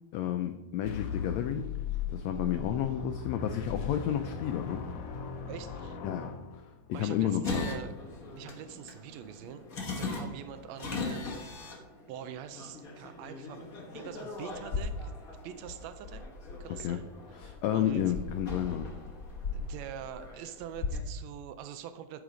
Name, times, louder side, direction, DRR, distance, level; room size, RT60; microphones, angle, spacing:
voice 1, 0.1-1.7 2.1-4.8 6.0-6.6 6.9-7.7 16.8-17.0 17.4-18.9, left 10 dB, 85° left, 7 dB, 1.5 m, -31 dB
sound 1, 0.8-7.0, left 6 dB, 70° left, 1.7 m, -38 dB
voice 2, 5.5-6.0 6.9-8.0 8.4-15.2 15.4-16.2 16.6-17.0 17.4-18.0 19.5-22.2, right 9 dB, 90° right, 10 dB, 1.5 m, -44 dB
sound 2, 7.4-21.0, left 3 dB, 50° left, 1.0 m, -39 dB
12.0 x 4.9 x 5.1 m, 0.98 s
omnidirectional pair, 3.7 m